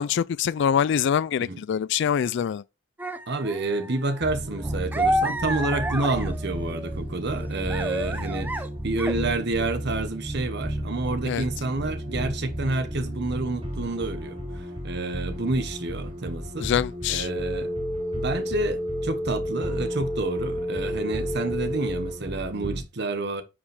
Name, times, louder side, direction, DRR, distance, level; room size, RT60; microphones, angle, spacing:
voice 1, 0.0-2.6 11.2-11.4 16.6-17.3, left 8 dB, 60° left, 0.3 m, -24 dB
sound 1, 3.0-7.0 7.3-8.7 9.0-9.3 9.6-9.7, right 1 dB, 10° right, 0.7 m, -30 dB
voice 2, 3.3-8.5 8.8-16.7 17.1-17.7 18.1-23.4, right 2 dB, 60° right, 1.1 m, -29 dB
sound 2, 4.2-22.8, equal, 25° right, 2.8 m, -34 dB
sound 3, 17.2-22.2, equal, 40° left, 2.8 m, -30 dB
9.6 x 5.3 x 3.4 m
head